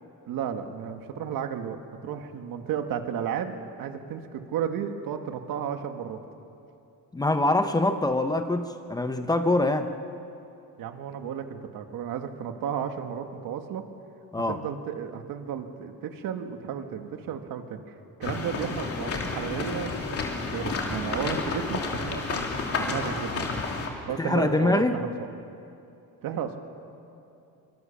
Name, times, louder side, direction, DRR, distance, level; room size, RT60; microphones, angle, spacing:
voice 1, 0.3-6.2 10.8-13.8 14.5-17.9 18.2-22.5 22.8-23.5 24.1-25.1 26.2-26.6, right 8 dB, 75° right, 6 dB, 2.0 m, -33 dB
voice 2, 7.1-9.9 14.3-14.6 24.2-25.0, left 2 dB, 10° left, 7 dB, 0.8 m, -24 dB
sound 1, 18.2-23.9, left 4 dB, 40° left, 3.0 m, -31 dB
24.5 x 24.0 x 7.2 m, 2.7 s
cardioid pair, 175°, 34 cm